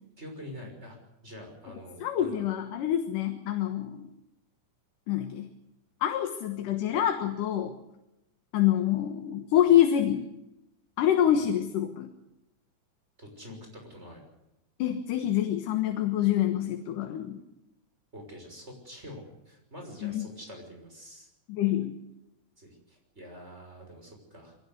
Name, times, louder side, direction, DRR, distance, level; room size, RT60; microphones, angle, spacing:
voice 1, 0.2-1.0 1.2-2.4 13.2-14.2 18.1-21.3 22.6-24.6, equal, 20° right, 2 dB, 6.2 m, -46 dB
voice 2, 2.0-4.1 5.1-5.5 6.0-7.7 8.5-10.3 11.0-12.1 14.8-17.4 20.0-20.3 21.5-21.9, left 11 dB, 80° left, 6 dB, 3.0 m, -26 dB
23.0 x 18.0 x 8.1 m, 0.91 s
omnidirectional pair, 3.7 m